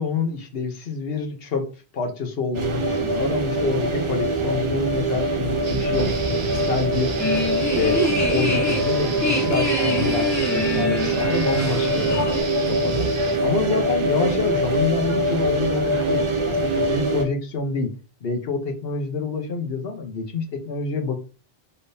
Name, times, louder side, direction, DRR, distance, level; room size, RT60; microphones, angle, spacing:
voice 1, 0.0-1.6 1.9-7.1 7.6-12.2 12.7-13.1 13.4-17.9 18.2-21.2, left 4 dB, 65° left, 2 dB, 1.1 m, -27 dB
sound 1, 2.5-17.3, right 1 dB, 35° right, 0.6 m, -23 dB
sound 2, 5.6-13.4, right 5 dB, 90° right, 1.1 m, -35 dB
sound 3, 7.2-12.4, left 1 dB, 20° left, 0.8 m, -26 dB
5.5 x 3.5 x 2.7 m, 0.37 s
omnidirectional pair, 1.1 m